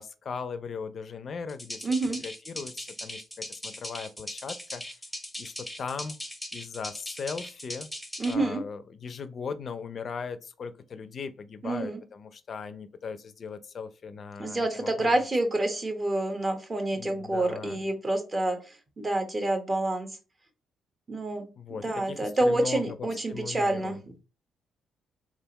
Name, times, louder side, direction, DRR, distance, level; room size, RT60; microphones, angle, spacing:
voice 1, 0.0-5.0 5.4-6.2 6.5-7.9 8.3-15.3 16.9-17.9 21.6-24.0, left 5 dB, 50° left, 0.5 m, -38 dB
sound 1, 1.5-8.3, left 1 dB, ahead, 0.8 m, -39 dB
voice 2, 1.8-2.2 8.2-8.6 11.6-12.0 14.4-18.6 19.0-20.1 21.1-21.4 21.8-24.0, right 2 dB, 25° right, 1.0 m, -28 dB
3.5 x 2.5 x 3.9 m
cardioid pair, 90°, 0 cm